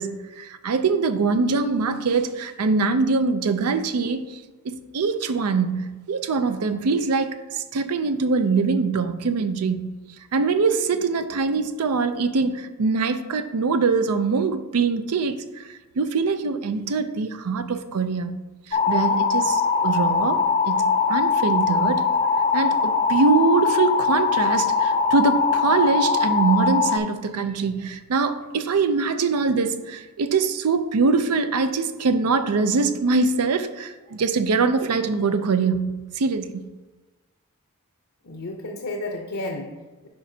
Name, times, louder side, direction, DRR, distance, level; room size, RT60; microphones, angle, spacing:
voice 1, 0.0-10.0 10.3-18.4 18.7-20.8 21.1-22.1 22.5-36.7, right 4 dB, 85° right, 0.5 m, -23 dB
sound 1, 18.7-27.0, left 5 dB, 30° left, 0.3 m, -21 dB
voice 2, 38.2-40.1, left 2 dB, 70° left, 0.7 m, -32 dB
8.7 x 5.0 x 2.7 m
head